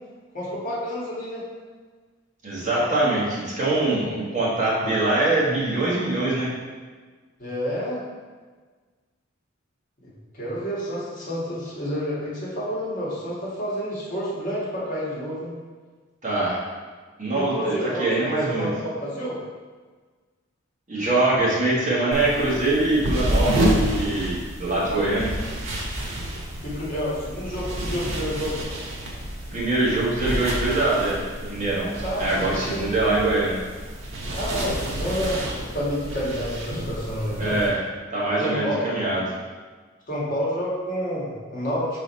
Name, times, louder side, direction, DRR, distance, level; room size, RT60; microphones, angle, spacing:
voice 1, 0.3-1.4 7.4-8.0 10.0-15.5 17.3-19.4 26.6-28.6 32.0-32.9 34.3-37.6 38.4-38.9 40.1-41.9, equal, 40° left, -7 dB, 1.7 m, -29 dB
voice 2, 2.4-6.5 16.2-16.6 17.2-17.7 18.0-18.7 20.9-25.3 29.5-31.9 32.2-33.6 37.4-37.8 38.1-39.3, right 2 dB, 35° right, -7 dB, 1.5 m, -23 dB
sound 1, 22.1-37.7, equal, 80° right, 1.3 m, -29 dB
5.5 x 4.0 x 4.2 m, 1.4 s
head